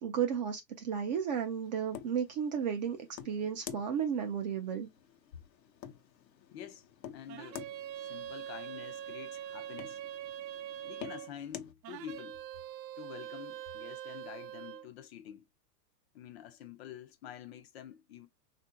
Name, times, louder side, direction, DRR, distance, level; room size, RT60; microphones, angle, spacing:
voice 1, 0.0-3.0 3.2-4.9, right 7 dB, 30° right, 0.3 m, -33 dB
sound 1, 1.4-11.7, left 9 dB, 85° left, 0.8 m, -50 dB
voice 2, 6.5-7.7 7.9-10.0 10.8-12.4 13.0-15.4 16.1-18.3, left 9 dB, 40° left, 0.4 m, -48 dB
sound 2, 7.3-11.3 11.8-14.9, right 11 dB, 85° right, 0.6 m, -43 dB
3.5 x 2.5 x 2.6 m
hypercardioid pair, 130°, 49 cm